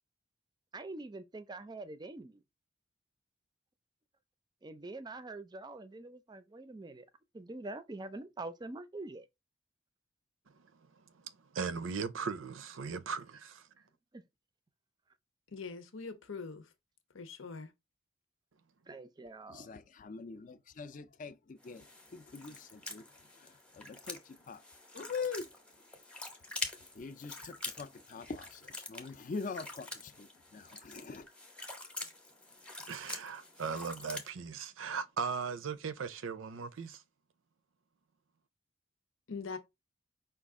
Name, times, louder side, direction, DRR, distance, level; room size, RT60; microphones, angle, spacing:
voice 1, 0.7-2.4 4.6-7.1 7.3-9.3 14.1-14.2 18.9-19.7, right 2 dB, 20° right, 0.4 m, -45 dB
voice 2, 11.2-13.7 32.9-37.0, right 5 dB, 85° right, 0.5 m, -38 dB
voice 3, 15.5-16.7 17.1-17.7 39.3-39.6, left 4 dB, 85° left, 0.8 m, -42 dB
voice 4, 19.5-24.6 24.9-26.4 26.8-31.3, left 4 dB, 40° left, 0.4 m, -44 dB
sound 1, 21.6-34.3, left 2 dB, 5° left, 0.7 m, -46 dB
5.1 x 2.4 x 3.5 m
head